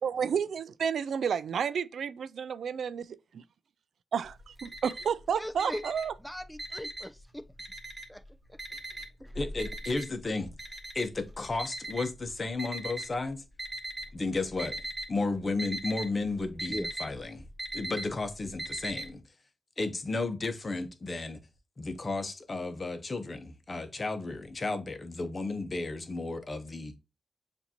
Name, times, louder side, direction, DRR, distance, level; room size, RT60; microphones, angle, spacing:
voice 1, 0.0-3.1 3.3-3.4 4.1-6.1, right 7 dB, 80° right, 0.3 m, -31 dB
Alarm, 4.3-5.2 5.5-7.2 7.6-8.2 8.6-13.1 13.6-14.2 14.5-15.1 15.4-19.1, right 1 dB, 25° right, 1.5 m, -38 dB
voice 2, 5.4-5.8 6.2-7.4 8.1-8.2 8.7-8.8 9.2-9.3 16.7-16.9, equal, 5° left, 0.4 m, -39 dB
voice 3, 9.3-10.5 10.9-13.4 14.1-14.8 15.1-17.5 17.7-19.2 19.8-21.4 21.8-27.0, left 3 dB, 40° left, 0.9 m, -33 dB
6.8 x 2.6 x 2.9 m
cardioid pair, 65°, 0 cm